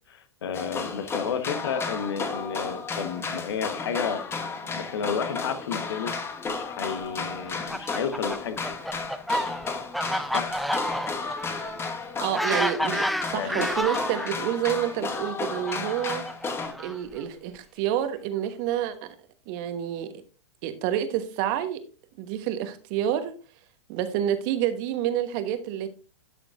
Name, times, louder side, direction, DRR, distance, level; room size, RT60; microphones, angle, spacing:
voice 1, 0.1-4.2 4.6-6.2 6.5-8.6 10.3-10.6 13.3-13.6, left 7 dB, 65° left, 9 dB, 1.2 m, -31 dB
sound 1, 0.5-16.7, left 4 dB, 15° left, 1.1 m, -33 dB
Fowl, 7.4-14.3 15.1-17.2, equal, ahead, 0.5 m, -30 dB
voice 2, 12.1-16.2 16.8-19.1 19.5-20.1 20.6-21.8 22.2-23.3 23.9-25.9, right 11 dB, 45° right, 10 dB, 1.2 m, -28 dB
11.0 x 6.5 x 2.5 m, 0.36 s
figure-of-eight pair, 100°, 14 cm